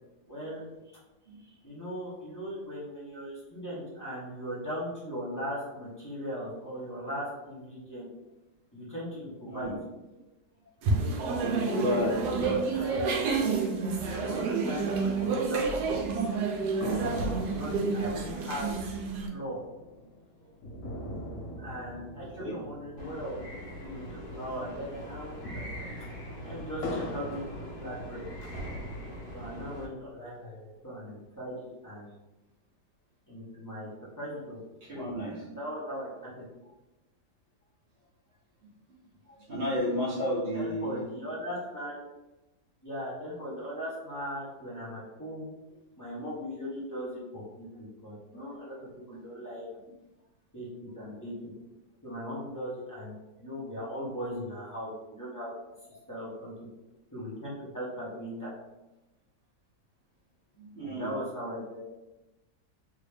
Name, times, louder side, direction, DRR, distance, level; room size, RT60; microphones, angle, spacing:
voice 1, 0.3-0.6 1.6-8.1 8.7-9.7 11.6-13.7 14.0-16.1 17.5-18.7 19.3-19.6 21.6-24.0 24.3-25.9 26.4-28.5 29.3-31.5 31.8-32.1 33.3-33.9 34.2-34.6 34.9-35.0 35.5-36.4 40.5-41.9 42.8-45.5 46.0-49.7 50.5-51.5 52.0-55.5 56.1-56.5 57.1-58.5 60.8-61.8, equal, 15° left, -8 dB, 0.8 m, -39 dB
voice 2, 1.3-1.6 9.5-9.8 10.6-10.7 11.4-12.9 22.2-22.6 34.8-35.4 38.9-39.0 39.2-41.1 48.3-48.5 60.5-61.1, left 1 dB, 45° right, -8 dB, 0.7 m, -33 dB
sound 1, 10.8-19.3, right 4 dB, 75° right, 1.1 m, -29 dB
sound 2, 16.8-24.4 24.7-24.8 25.2-28.6 29.1-30.1, left 1 dB, 85° left, 1.4 m, -42 dB
sound 3, 23.0-29.9, equal, 65° left, 1.4 m, -42 dB
3.2 x 2.8 x 3.3 m, 1.0 s
omnidirectional pair, 1.8 m